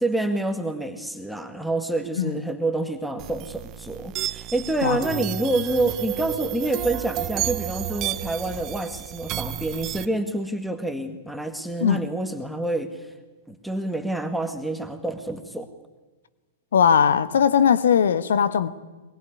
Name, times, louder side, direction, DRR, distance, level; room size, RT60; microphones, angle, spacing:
voice 1, 0.0-13.1 13.5-15.7, right 2 dB, ahead, 1.9 m, -27 dB
sound 1, 3.2-10.0, right 12 dB, 35° right, 0.8 m, -31 dB
voice 2, 4.8-5.2 11.8-12.1 16.7-18.7, left 7 dB, 65° left, 1.2 m, -19 dB
23.5 x 22.0 x 9.8 m
figure-of-eight pair, 100°, 0 cm